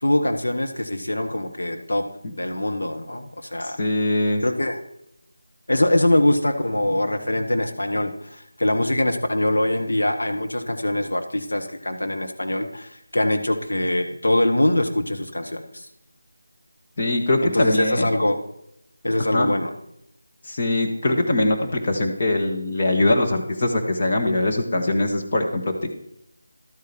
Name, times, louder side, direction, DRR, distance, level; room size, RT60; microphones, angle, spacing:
voice 1, 0.0-2.0 2.3-3.8 4.4-4.8 5.7-15.8 17.4-18.4 19.0-19.7, left 1 dB, 65° left, 4 dB, 1.5 m, -23 dB
voice 2, 3.6-4.4 17.0-18.1 19.3-19.5 20.4-26.0, left 2 dB, 30° left, 1 dB, 1.6 m, -22 dB
12.0 x 8.3 x 4.5 m, 0.76 s
figure-of-eight pair, 160°, 0 cm